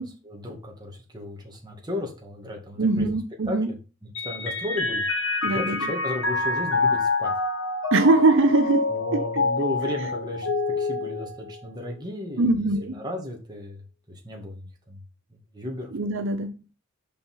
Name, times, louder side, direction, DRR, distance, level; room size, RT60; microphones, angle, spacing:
voice 1, 0.2-3.1 3.4-3.8 4.0-5.0 5.4-7.3 8.9-15.0 15.3-16.3, left 1 dB, 20° right, 2.0 m, -35 dB
voice 2, 2.8-3.7 5.4-5.9 7.9-9.4 12.4-13.0 15.9-16.5, right 2 dB, 60° right, 0.7 m, -22 dB
Mallet percussion, 4.1-11.9, left 3 dB, 65° left, 1.6 m, -27 dB
5.6 x 5.4 x 5.6 m
head